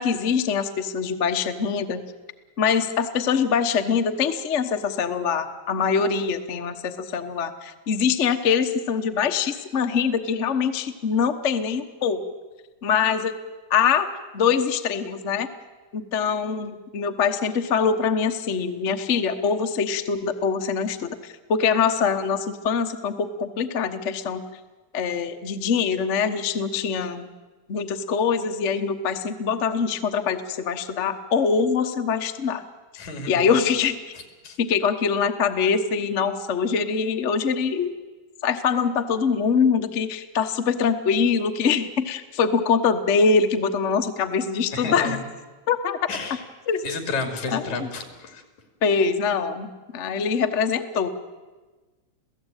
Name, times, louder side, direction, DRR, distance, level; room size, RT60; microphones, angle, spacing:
voice 1, 0.0-2.0 2.6-12.2 12.8-13.4 13.7-14.1 14.3-15.5 15.9-24.4 24.9-27.3 27.7-32.6 33.3-34.0 34.6-37.9 38.4-45.2 45.7-46.0 46.7-46.8 47.5-47.9 48.8-51.1, left 6 dB, 60° left, 6 dB, 0.7 m, -23 dB
voice 2, 33.0-33.5 34.4-34.6 44.7-45.2 46.1-46.4 46.8-48.4, left 3 dB, 80° left, 6 dB, 4.2 m, -31 dB
28.0 x 17.0 x 9.0 m, 1.3 s
omnidirectional pair, 3.3 m